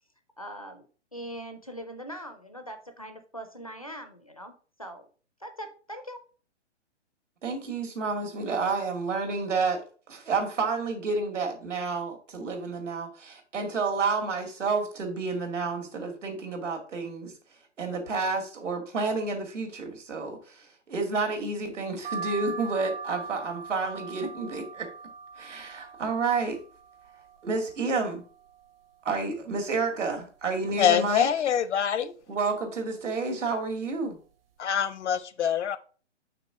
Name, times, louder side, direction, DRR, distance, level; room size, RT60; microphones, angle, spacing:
voice 1, 0.4-0.9 1.1-4.5 4.8-5.1 5.4-6.2, equal, 30° left, 0.4 m, -41 dB
voice 2, 7.4-9.8 10.1-17.3 17.8-24.9 25.4-26.6 27.4-28.2 29.0-31.3 32.3-34.2, right 4 dB, 80° right, 2.3 m, -30 dB
sound 1, 22.0-27.7 28.2-28.9 29.3-29.4 29.6-30.7 31.2-31.6 32.4-32.7 33.5-33.7 34.0-34.2, right 4 dB, 50° right, 0.8 m, -41 dB
voice 3, 30.8-32.1 34.6-35.8, left 8 dB, 70° left, 0.7 m, -25 dB
5.9 x 3.6 x 5.8 m
hypercardioid pair, 175°, 36 cm